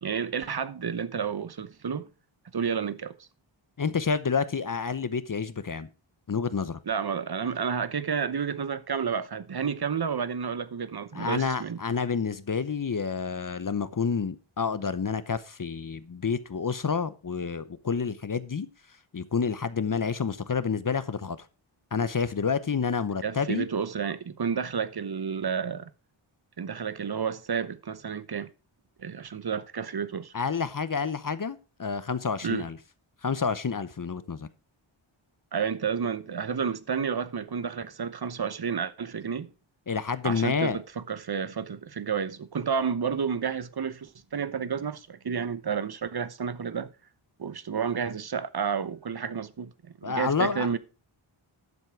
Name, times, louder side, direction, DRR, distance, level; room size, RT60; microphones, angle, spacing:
voice 1, 0.0-2.1 2.5-3.1 6.9-11.8 23.2-25.9 26.6-28.5 29.0-30.3 32.4-32.7 35.5-39.5 40.2-46.9 47.4-49.7 50.0-50.8, right 6 dB, 50° right, 1.0 m, -31 dB
voice 2, 3.8-5.9 6.3-6.8 11.1-18.7 19.1-21.4 21.9-23.7 30.3-32.8 33.2-34.5 39.9-40.8 50.0-50.8, left 5 dB, 40° left, 0.8 m, -29 dB
11.0 x 7.3 x 4.6 m
wide cardioid pair, 65°, 49 cm